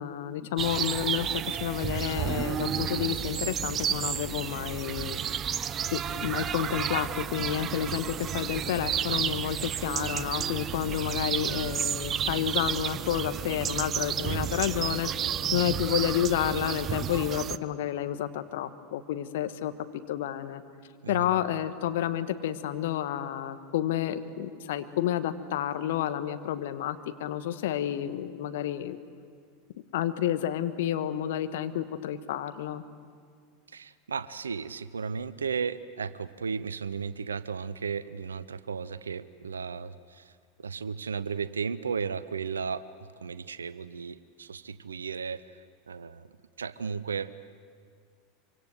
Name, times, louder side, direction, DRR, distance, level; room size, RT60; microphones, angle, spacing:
voice 1, 0.0-5.2 5.9-15.1 15.5-19.7 20.1-20.6 21.1-29.0 29.9-32.8, left 11 dB, 65° left, 10 dB, 1.2 m, -30 dB
sound 1, 0.6-17.6, right 9 dB, 35° right, 0.7 m, -31 dB
voice 2, 33.7-40.3 40.6-46.3 46.6-47.3, right 6 dB, 80° right, 15 dB, 0.7 m, -35 dB
25.5 x 25.0 x 8.0 m, 2.1 s
figure-of-eight pair, 80°, 0 cm